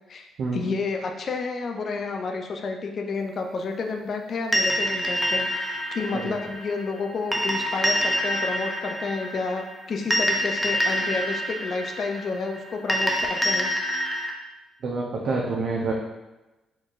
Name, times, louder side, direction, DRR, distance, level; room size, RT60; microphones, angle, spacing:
voice 1, 0.1-13.7, left 4 dB, 55° left, 3 dB, 0.4 m, -30 dB
sound 1, 4.5-14.3, equal, ahead, 0.5 m, -27 dB
voice 2, 14.8-15.9, right 3 dB, 65° right, -3 dB, 0.5 m, -27 dB
4.2 x 3.1 x 2.4 m, 1.1 s
cardioid pair, 90°, 0 cm